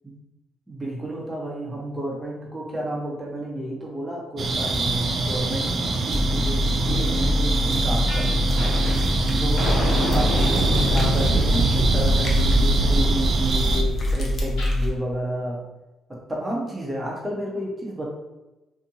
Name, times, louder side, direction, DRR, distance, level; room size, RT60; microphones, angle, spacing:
voice 1, 0.7-15.6 16.1-18.0, right 1 dB, 15° right, -4 dB, 0.9 m, -31 dB
sound 1, 4.4-13.8, right 3 dB, 50° right, 0.4 m, -25 dB
sound 2, 6.1-14.9, left 1 dB, 35° left, 0.7 m, -24 dB
sound 3, 8.1-8.3 8.6-14.8, right 1 dB, 75° left, 1.3 m, -25 dB
2.7 x 2.5 x 2.7 m, 1.0 s
cardioid pair, 90°, 0 cm